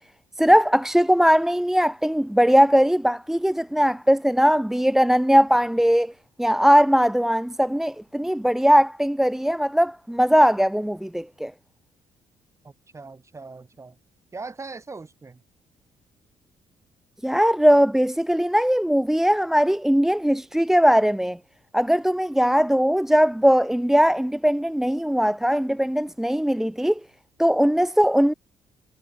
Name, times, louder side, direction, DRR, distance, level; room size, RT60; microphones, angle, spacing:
voice 1, 0.4-6.1 6.4-11.5 17.2-21.4 21.7-27.0 27.4-28.3, equal, 5° right, 1.4 m, -20 dB
voice 2, 12.6-14.0 14.3-15.4, right 3 dB, 25° right, 6.4 m, -40 dB
cardioid pair, 90°, 12 cm